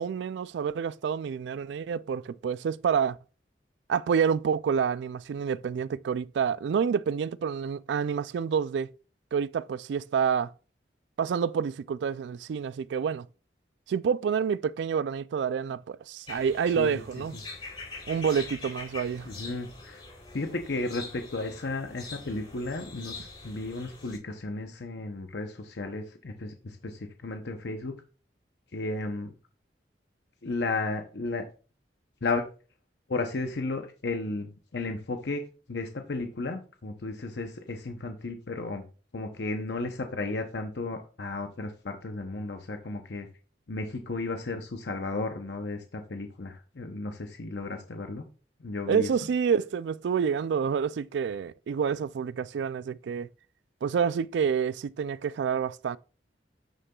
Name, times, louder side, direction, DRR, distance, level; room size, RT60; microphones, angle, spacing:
voice 1, 0.0-3.2 3.9-8.9 9.3-10.5 11.2-13.3 13.9-17.4 18.1-19.3 48.9-53.3 53.8-56.0, right 7 dB, 75° right, 0.3 m, -28 dB
sound 1, 16.3-24.2, left 3 dB, 30° left, 4.0 m, -44 dB
voice 2, 19.2-20.0 20.3-28.0 28.7-29.3 30.4-31.5 32.2-32.4 33.1-38.8 39.1-43.3 43.7-48.3 48.6-49.1, left 3 dB, 70° left, 0.7 m, -34 dB
9.1 x 6.6 x 2.3 m
head